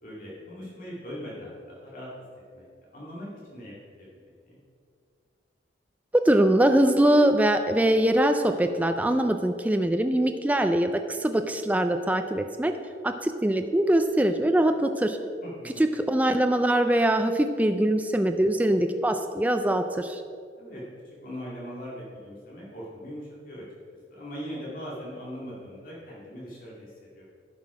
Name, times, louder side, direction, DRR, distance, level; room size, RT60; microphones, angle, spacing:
voice 1, 0.0-2.1 2.5-2.6 2.9-4.1 4.4-4.6 15.4-15.8 20.6-23.6 24.1-27.2, equal, 50° left, -6 dB, 2.2 m, -40 dB
voice 2, 6.1-12.7 13.0-15.2 16.1-20.2, right 1 dB, 10° right, 7 dB, 0.3 m, -23 dB
11.5 x 5.9 x 4.8 m, 2.2 s
head